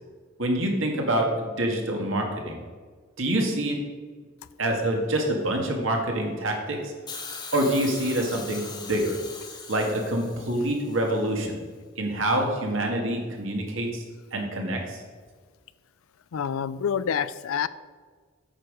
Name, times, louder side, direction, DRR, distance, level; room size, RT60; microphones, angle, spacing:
voice 1, 0.4-2.6 3.2-3.8 4.6-6.9 7.5-9.2 9.7-11.6 12.0-14.0 14.3-15.0, right 1 dB, 65° right, 1 dB, 1.9 m, -26 dB
Hiss, 7.1-11.2 12.2-12.3, left 4 dB, 20° left, 1.2 m, -40 dB
voice 2, 16.3-17.7, left 7 dB, 85° left, 16 dB, 0.4 m, -27 dB
8.8 x 6.5 x 5.2 m, 1.5 s
head